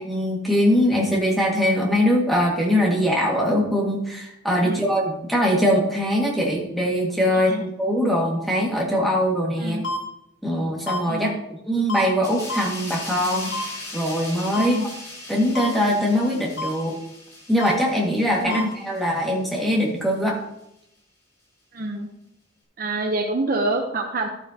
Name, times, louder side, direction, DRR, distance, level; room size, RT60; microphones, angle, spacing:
voice 1, 0.0-9.8 10.4-11.3 11.7-13.5 13.9-14.8 15.3-17.0 17.5-20.4, equal, ahead, -3 dB, 2.0 m, -22 dB
voice 2, 7.3-7.6 9.6-9.8 11.1-11.4 14.5-14.9 18.4-18.7 21.7-22.1 22.8-24.3, right 2 dB, 45° right, 3 dB, 0.8 m, -27 dB
sound 1, 9.8-10.0 10.9-11.0 11.9-12.0 12.5-12.6 13.5-13.6 14.5-14.7 15.5-15.7 16.6-16.7 17.6-17.7 18.5-18.6, left 1 dB, 80° left, 1.7 m, -27 dB
sound 2, 12.2-19.4 19.8-20.0, left 2 dB, 15° left, 2.7 m, -39 dB
12.0 x 8.9 x 2.9 m, 0.81 s
head